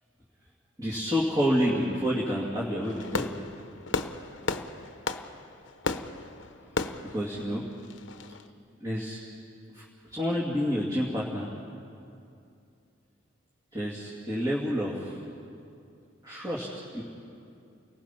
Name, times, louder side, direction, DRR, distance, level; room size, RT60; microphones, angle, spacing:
voice 1, 0.8-3.3 7.1-7.6 8.8-9.2 9.7-9.8 10.1-11.5 13.7-15.1 16.2-16.7 16.9-17.0, equal, 20° right, -5 dB, 2.5 m, -28 dB
Fireworks, 2.8-8.4, left 3 dB, 70° left, 0.9 m, -35 dB
29.5 x 20.0 x 5.9 m, 2.5 s
head